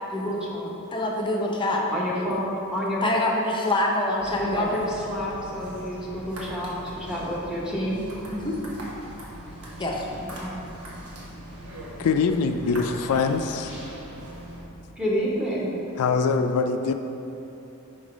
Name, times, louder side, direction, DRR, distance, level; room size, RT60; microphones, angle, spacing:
voice 1, 0.1-0.7 1.9-3.0 4.3-8.0 10.2-10.5 15.0-15.7, equal, 5° right, -5 dB, 1.1 m, -29 dB
voice 2, 0.9-1.8 3.0-4.7 8.3-8.6 9.8-10.1, left 1 dB, 20° left, 0 dB, 0.7 m, -25 dB
sound 1, 4.2-14.6, right 1 dB, 80° right, 1.2 m, -40 dB
voice 3, 12.0-13.7 16.0-16.9, left 5 dB, 85° left, 7 dB, 0.4 m, -23 dB
5.4 x 5.2 x 5.0 m, 3.0 s
head